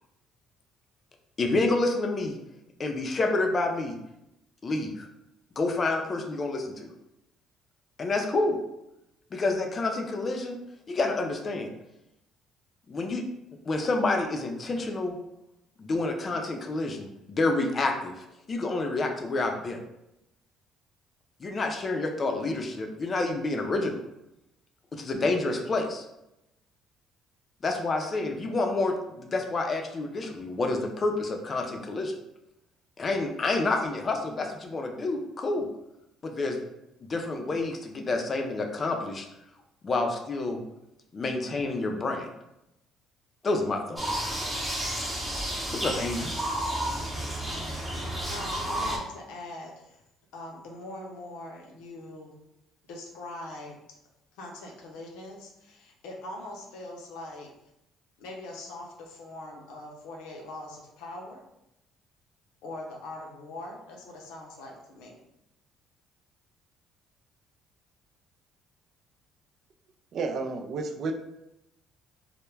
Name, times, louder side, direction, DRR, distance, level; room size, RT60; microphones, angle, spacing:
voice 1, 1.4-2.4 2.8-4.0 4.6-5.1 5.6-6.9 8.0-8.6 9.3-10.6 10.9-11.7 12.9-13.2 13.7-15.2 15.8-19.8 21.4-24.0 24.9-26.0 27.6-32.1 33.0-35.7 36.2-36.6 37.0-39.2 39.8-40.6 41.1-42.3 43.4-44.0 45.7-46.3, left 2 dB, 35° left, 3 dB, 0.4 m, -28 dB
sound 1, 44.0-49.0, right 1 dB, 10° right, 0.7 m, -31 dB
voice 2, 48.3-50.0 50.3-52.3 52.9-54.0 54.4-57.5 58.2-61.4 62.6-65.2, left 2 dB, 85° left, 0 dB, 0.5 m, -42 dB
voice 3, 70.1-71.1, right 4 dB, 55° right, 4 dB, 0.3 m, -31 dB
2.1 x 2.1 x 3.1 m, 0.87 s
cardioid pair, 95°, 0 cm